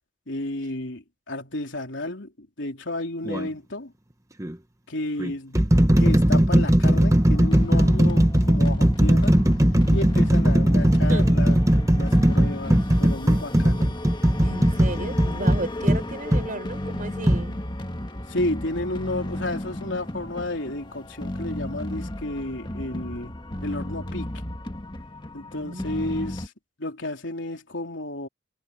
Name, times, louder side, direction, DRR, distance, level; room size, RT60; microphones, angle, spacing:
voice 1, 0.3-3.9 4.9-5.6 6.0-9.4 9.9-11.6 11.9-13.9 18.3-23.3 23.6-24.3 25.3-26.5 26.8-28.3, left 1 dB, 75° left, 3.6 m, -32 dB
sound 1, 3.3-3.5 4.4-4.5 5.2-16.5 17.3-17.4, right 1 dB, 15° right, 1.2 m, -19 dB
sound 2, 7.0-26.5, left 1 dB, 25° left, 1.8 m, -34 dB
voice 2, 14.4-17.6 25.6-26.5, right 2 dB, 45° right, 5.4 m, -34 dB
head